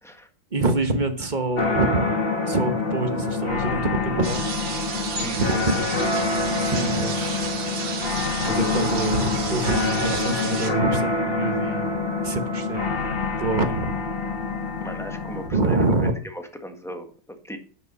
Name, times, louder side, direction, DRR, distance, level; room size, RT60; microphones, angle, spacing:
voice 1, 0.5-2.1 2.4-4.4 5.1-6.1 6.6-7.5 8.4-11.9 12.2-12.8 13.4-13.9 15.5-16.1, right 2 dB, 30° right, 7 dB, 1.0 m, -25 dB
sound 1, 1.6-15.5, left 3 dB, 30° left, 1.9 m, -26 dB
sound 2, 4.2-10.7, right 4 dB, 75° right, 2.7 m, -31 dB
voice 2, 5.2-5.6 13.7-13.8 14.8-17.6, equal, ahead, 5 dB, 1.2 m, -37 dB
9.9 x 8.3 x 5.5 m, 0.40 s
omnidirectional pair, 2.2 m